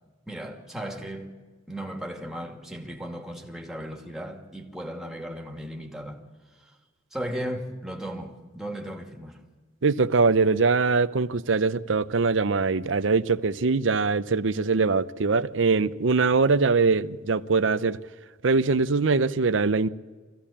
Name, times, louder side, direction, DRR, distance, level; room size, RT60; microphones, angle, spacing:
voice 1, 0.3-1.4 1.7-6.2 6.6-6.7 7.1-9.4, equal, 5° right, 2.5 m, -36 dB
voice 2, 9.8-18.0 18.4-19.9, right 4 dB, 85° right, 0.7 m, -22 dB
23.5 x 16.0 x 8.7 m
head